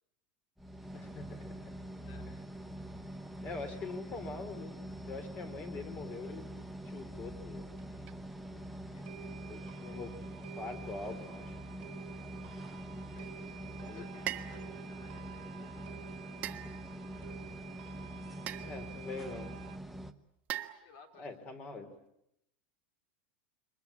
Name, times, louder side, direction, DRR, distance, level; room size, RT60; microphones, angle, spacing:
sound 1, 0.6-20.1, right 1 dB, ahead, 1.0 m, -45 dB
voice 1, 0.9-1.5 3.4-4.7 5.1-6.5 6.8-7.8 9.5-10.1 10.5-11.6 13.8-14.0 18.6-19.5 21.2-21.9, left 3 dB, 25° left, 9 dB, 3.6 m, -43 dB
voice 2, 7.8-9.5 12.9-13.6 13.9-17.7 18.0-18.4 20.8-21.3, left 7 dB, 50° left, 6 dB, 3.9 m, -61 dB
sound 2, 7.8-7.9 8.1-8.2 8.6-8.7 9.0-19.8, right 13 dB, 85° right, 1.4 m, -51 dB
sound 3, 14.3-14.6 16.4-17.1 18.5-18.9 20.5-21.2, right 12 dB, 30° right, 1.4 m, -40 dB
28.0 x 24.0 x 8.4 m, 0.81 s
supercardioid pair, 165°, 6 cm